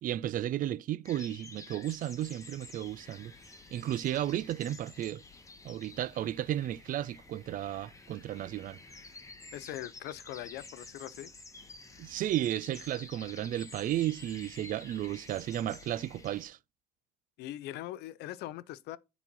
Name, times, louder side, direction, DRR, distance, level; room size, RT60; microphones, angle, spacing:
voice 1, 0.0-3.3 3.7-5.2 5.6-8.8 12.0-16.6, right 12 dB, 55° right, 0.4 m, -33 dB
sound 1, 1.0-16.4, left 3 dB, 20° left, 1.3 m, -51 dB
voice 2, 9.5-11.3 17.4-19.0, left 14 dB, 80° left, 0.5 m, -41 dB
7.3 x 4.0 x 5.2 m
cardioid pair, 110°, 17 cm